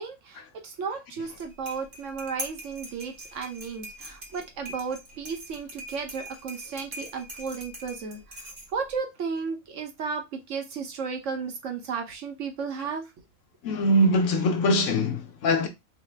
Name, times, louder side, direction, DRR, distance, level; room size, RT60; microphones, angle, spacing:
voice 1, 0.0-8.4 8.7-13.0, right 5 dB, 65° right, 1.0 m, -34 dB
sound 1, 1.3-9.0, right 1 dB, 35° right, 0.9 m, -42 dB
voice 2, 13.6-15.7, equal, 70° left, 0.9 m, -22 dB
4.0 x 2.0 x 3.2 m
omnidirectional pair, 1.5 m